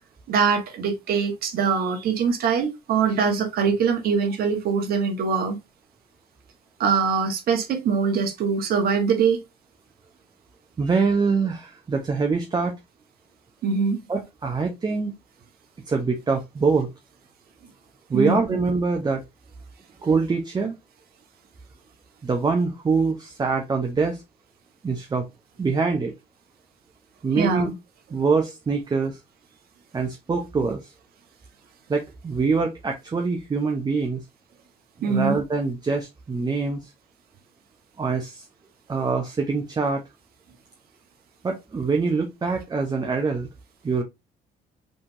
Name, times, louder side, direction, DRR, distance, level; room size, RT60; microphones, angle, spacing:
voice 1, 0.3-5.6 6.8-9.4 13.6-14.0 18.1-18.4 27.4-27.7 35.0-35.4, right 6 dB, 65° right, 1.6 m, -23 dB
voice 2, 10.8-12.7 14.1-15.1 15.9-16.9 18.1-19.2 20.0-20.7 22.2-24.2 24.8-25.3 25.6-26.1 27.2-27.7 28.1-29.2 29.9-30.9 31.9-34.2 35.0-36.9 38.0-38.4 38.9-40.0 41.4-43.5 43.8-44.0, right 4 dB, 25° right, 0.9 m, -24 dB
5.3 x 3.5 x 2.8 m
cardioid pair, 110°, 17 cm